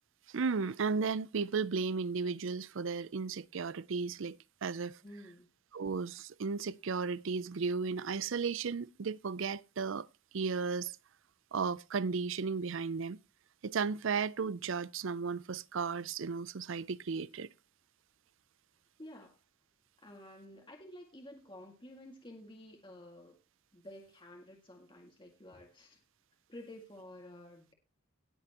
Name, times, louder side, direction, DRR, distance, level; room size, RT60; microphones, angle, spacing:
voice 1, 0.3-5.0 5.7-10.1 10.3-11.0 11.5-13.2 13.6-17.5, right 5 dB, 65° right, 0.5 m, -34 dB
voice 2, 5.0-5.5 19.0-19.4 20.0-23.4 23.7-26.0 26.5-27.7, left 1 dB, 25° left, 2.0 m, -51 dB
18.5 x 7.6 x 3.0 m
head